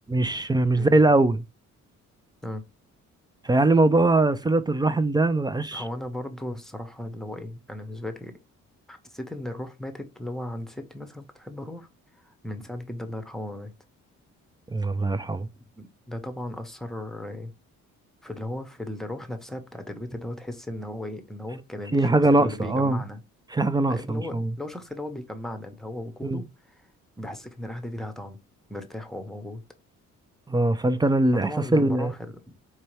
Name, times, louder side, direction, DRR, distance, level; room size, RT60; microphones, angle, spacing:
voice 1, 0.1-1.4 3.4-5.8 14.7-15.5 21.9-23.0 23.5-24.5 26.2-26.4 30.5-32.1, right 2 dB, 15° right, 0.4 m, -21 dB
voice 2, 5.7-8.4 8.9-11.9 12.2-13.7 15.8-17.5 18.2-23.2 23.9-26.9 27.2-28.4 28.7-29.6 31.4-32.6, left 1 dB, ahead, 0.8 m, -36 dB
4.5 x 2.8 x 3.1 m
cardioid pair, 90°, 30 cm